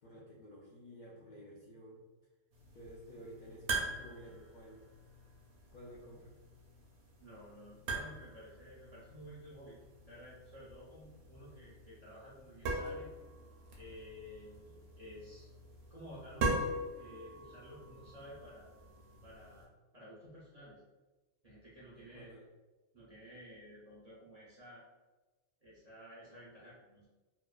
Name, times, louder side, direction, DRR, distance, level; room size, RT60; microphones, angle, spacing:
voice 1, 0.0-2.0 2.7-4.9 5.7-6.3 21.9-22.5, equal, 60° left, -7 dB, 0.5 m, -52 dB
sound 1, 2.5-19.7, right 2 dB, 70° right, 0.9 m, -43 dB
voice 2, 7.2-9.8 10.1-13.1 13.7-15.5 15.9-16.6 17.0-18.7 19.2-20.8 21.4-22.3 22.9-24.8 25.6-27.1, equal, 50° right, -8 dB, 0.4 m, -53 dB
2.7 x 2.0 x 2.3 m, 1.2 s
omnidirectional pair, 1.2 m